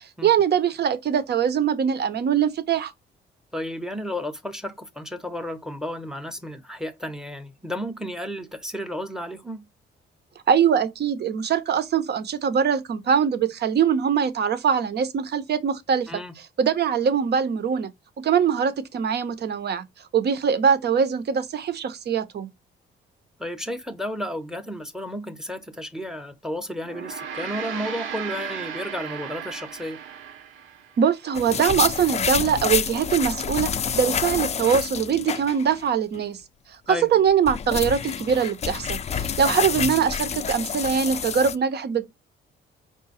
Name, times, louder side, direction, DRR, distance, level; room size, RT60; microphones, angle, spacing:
voice 1, 0.0-2.9 10.5-16.1 16.6-17.9 18.2-19.9 20.1-22.5 31.0-36.4 36.9-42.1, right 7 dB, 55° right, 0.8 m, -22 dB
voice 2, 3.5-9.6 16.1-16.4 23.4-30.0 36.9-37.1 39.5-39.7, equal, 5° right, 0.8 m, -32 dB
Gong, 26.8-31.4, right 8 dB, 85° right, 0.9 m, -36 dB
sound 1, 31.3-35.8 36.1-36.2 37.1-41.6, left 7 dB, 35° left, 0.4 m, -28 dB
4.9 x 2.3 x 4.1 m
cardioid pair, 90°, 20 cm